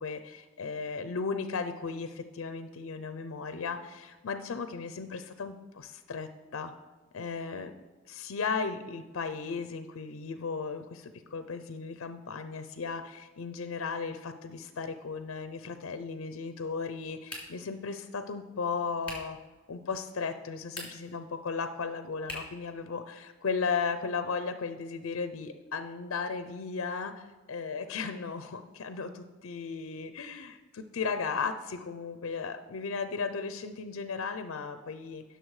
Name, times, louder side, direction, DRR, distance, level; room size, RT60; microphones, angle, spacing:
voice 1, 0.0-6.7 7.1-7.7 8.1-19.4 19.7-35.2, left 5 dB, 65° left, 9 dB, 0.5 m, -35 dB
sound 1, 17.3-17.8 19.0-19.4 20.6-21.2 22.2-22.6, left 2 dB, 5° left, 2.8 m, -42 dB
16.5 x 6.6 x 3.2 m, 1.3 s
head